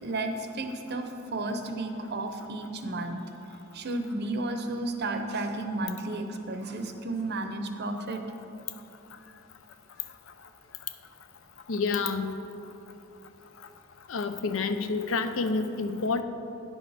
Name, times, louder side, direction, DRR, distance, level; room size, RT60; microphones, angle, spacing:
voice 1, 0.0-3.2 3.7-8.2, right 2 dB, 55° right, 6 dB, 0.7 m, -33 dB
voice 2, 11.7-12.3 14.1-16.2, left 4 dB, 70° left, 9 dB, 0.5 m, -28 dB
9.9 x 6.3 x 4.9 m, 3.0 s
head